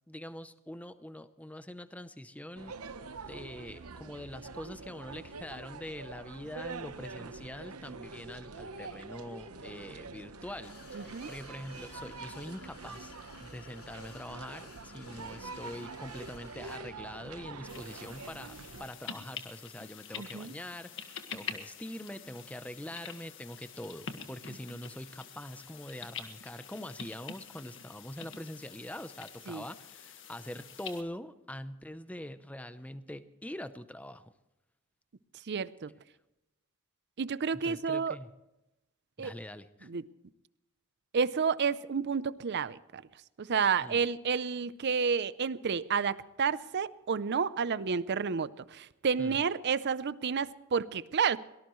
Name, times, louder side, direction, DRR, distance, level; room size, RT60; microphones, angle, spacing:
voice 1, 0.1-2.7 3.3-34.3 37.5-38.3 39.2-39.9 43.8-44.0 49.2-49.4, left 1 dB, 5° left, 0.7 m, -44 dB
sound 1, 2.6-18.9, right 4 dB, 75° right, 0.9 m, -45 dB
sound 2, 10.6-16.8, left 7 dB, 85° left, 3.0 m, -55 dB
voice 2, 10.9-11.3 20.2-20.5 29.5-29.6 35.5-35.9 37.2-38.2 39.2-39.3 39.9-40.0 41.1-43.0 43.4-51.4, right 6 dB, 50° right, 0.5 m, -30 dB
sound 3, 17.7-31.0, left 7 dB, 60° left, 1.6 m, -46 dB
23.0 x 18.5 x 3.1 m
head